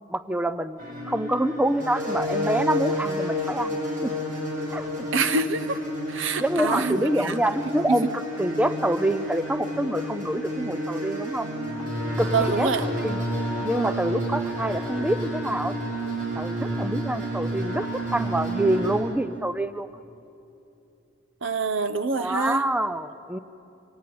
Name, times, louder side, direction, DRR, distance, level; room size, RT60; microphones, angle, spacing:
voice 1, 0.1-0.8 1.1-3.8 4.0-4.1 4.7-4.9 6.4-8.1 8.4-11.5 12.2-13.2 13.6-15.8 16.3-19.9 22.2-23.4, right 1 dB, 5° right, 12 dB, 0.5 m, -26 dB
sound 1, 0.8-19.0, equal, 45° right, 6.6 m, -30 dB
voice 2, 5.1-5.8 6.1-7.3 7.9-8.0 12.3-12.8 21.4-22.6, right 4 dB, 70° right, 12 dB, 1.0 m, -25 dB
27.0 x 18.0 x 8.6 m, 2.7 s
head